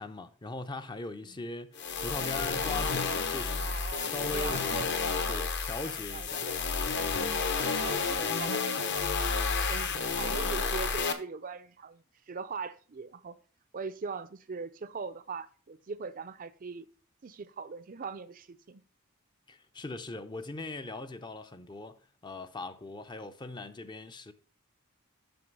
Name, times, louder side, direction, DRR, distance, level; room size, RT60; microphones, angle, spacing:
voice 1, 0.0-3.8 4.0-4.9 5.3-6.4 7.1-7.3 19.5-24.3, left 2 dB, 20° left, 0.5 m, -40 dB
sound 1, 1.7-11.1, left 5 dB, 55° left, 1.0 m, -31 dB
voice 2, 3.6-5.2 5.8-6.7 7.8-13.4 13.7-16.9 17.2-18.8, right 5 dB, 40° right, 0.5 m, -41 dB
7.8 x 5.8 x 5.3 m
head